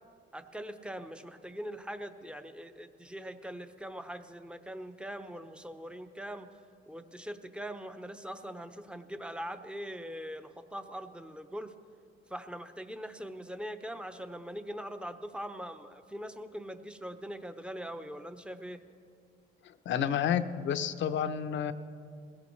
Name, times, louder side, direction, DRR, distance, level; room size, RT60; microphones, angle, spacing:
voice 1, 0.3-6.5 6.9-11.7 12.3-18.8, equal, 5° right, 8 dB, 0.8 m, -42 dB
voice 2, 19.6-21.7, left 8 dB, 70° left, 10 dB, 0.7 m, -30 dB
20.5 x 16.5 x 3.2 m, 2.4 s
cardioid pair, 90°, 20 cm